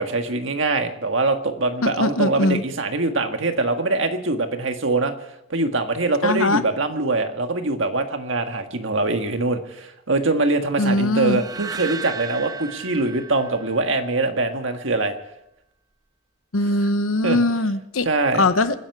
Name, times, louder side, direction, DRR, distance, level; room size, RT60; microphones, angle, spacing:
voice 1, 0.0-5.1 5.5-15.1 17.2-17.4 18.0-18.5, right 2 dB, 65° right, 6 dB, 1.7 m, -23 dB
voice 2, 1.8-2.6 6.2-6.6 10.8-11.4 16.5-18.1 18.4-18.8, left 2 dB, 90° left, 12 dB, 1.1 m, -21 dB
sound 1, 11.2-14.4, right 6 dB, 20° right, 0.5 m, -35 dB
27.0 x 10.5 x 4.8 m, 0.82 s
head